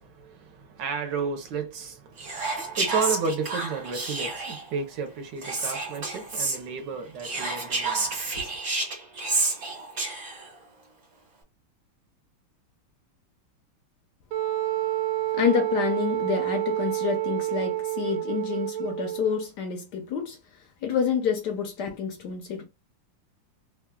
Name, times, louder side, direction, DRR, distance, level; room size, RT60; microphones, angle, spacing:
voice 1, 0.0-8.6, right 5 dB, 65° right, 1.3 m, -33 dB
Whispering, 2.2-4.7 5.4-6.6 7.2-10.5, right 3 dB, 40° right, 1.3 m, -30 dB
Wind instrument woodwind instrument, 14.3-19.4, right 15 dB, 85° right, 1.5 m, -28 dB
voice 2, 15.3-22.6, left 7 dB, 70° left, 1.0 m, -28 dB
3.6 x 2.3 x 2.2 m
omnidirectional pair, 2.4 m